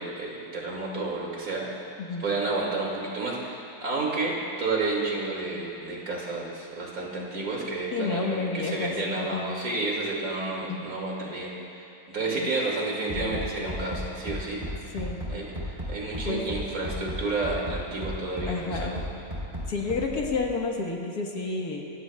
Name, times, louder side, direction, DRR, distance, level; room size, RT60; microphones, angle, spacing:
voice 1, 0.0-1.9 2.2-14.6 15.3-19.0, right 3 dB, 60° right, -3 dB, 2.7 m, -31 dB
voice 2, 7.9-9.5 10.7-10.8 12.2-12.5 13.2-13.4 14.9-15.2 16.3-16.4 18.5-19.0 19.7-21.8, left 4 dB, 70° left, 0 dB, 1.9 m, -30 dB
Bass drum, 13.1-20.5, equal, 20° right, 3.6 m, -34 dB
26.5 x 15.5 x 2.3 m, 2.6 s
omnidirectional pair, 1.7 m